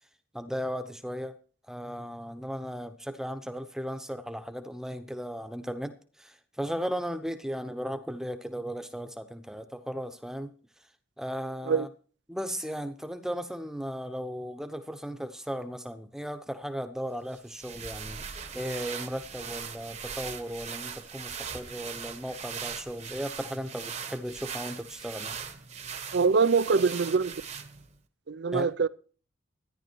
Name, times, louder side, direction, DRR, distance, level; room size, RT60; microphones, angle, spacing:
voice 1, 0.3-1.4 1.7-10.5 11.2-11.9 12.3-25.4 28.5-28.7, equal, 5° right, 0.9 m, -36 dB
sound 1, 17.3-28.0, right 7 dB, 35° right, 1.0 m, -40 dB
voice 2, 26.1-27.4 28.3-28.9, right 5 dB, 55° right, 0.5 m, -24 dB
13.5 x 10.5 x 4.6 m
head